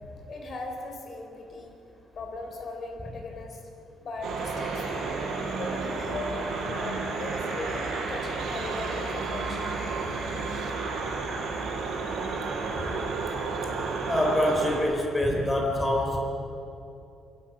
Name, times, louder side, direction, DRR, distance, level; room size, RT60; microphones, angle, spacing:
voice 1, 0.3-1.7 2.1-3.6 4.0-6.4 6.7-9.7, left 2 dB, 40° left, 3 dB, 4.3 m, -38 dB
sound 1, 4.2-14.8, right 4 dB, 75° right, 6.3 m, -31 dB
voice 2, 14.1-16.2, left 1 dB, 15° left, 1 dB, 4.0 m, -25 dB
27.0 x 23.0 x 6.1 m, 2.9 s
cardioid pair, 155°, 0 cm